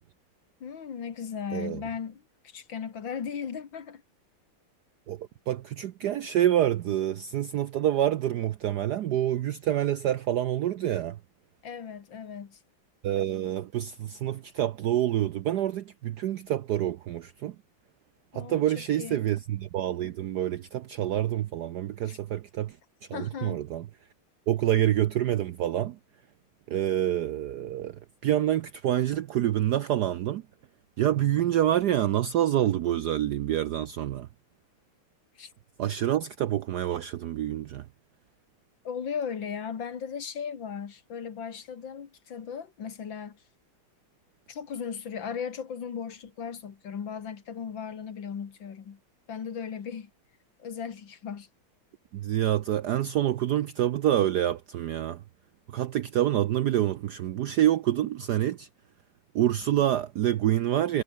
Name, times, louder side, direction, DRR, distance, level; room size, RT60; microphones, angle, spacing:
voice 1, 0.6-4.0 11.6-12.6 18.3-19.2 22.1-22.2 23.1-23.6 35.4-35.5 38.8-43.4 44.5-49.0 49.3-50.1 50.6-51.5, left 7 dB, 60° left, 2.5 m, -37 dB
voice 2, 5.1-11.2 13.0-17.6 18.3-22.8 23.1-23.8 24.5-26.0 26.7-30.4 31.0-34.3 35.8-37.9 52.1-55.2 55.7-58.7 59.3-61.0, right 12 dB, 70° right, 1.0 m, -27 dB
omnidirectional pair, 2.4 m